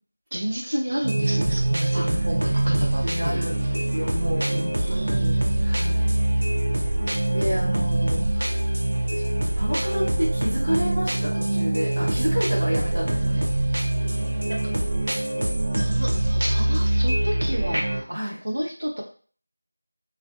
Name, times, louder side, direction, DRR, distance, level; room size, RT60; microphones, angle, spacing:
voice 1, 0.3-3.5 4.7-6.2 14.5-14.7 15.8-19.0, right 1 dB, 70° right, 0 dB, 0.9 m, -31 dB
sound 1, 1.0-18.0, right 1 dB, 50° right, 0.5 m, -24 dB
voice 2, 3.0-6.1 7.3-8.5 9.1-9.2 9.5-13.5 18.1-18.4, equal, 5° right, -19 dB, 0.8 m, -30 dB
2.6 x 2.4 x 2.4 m, 0.43 s
figure-of-eight pair, 180°, 0 cm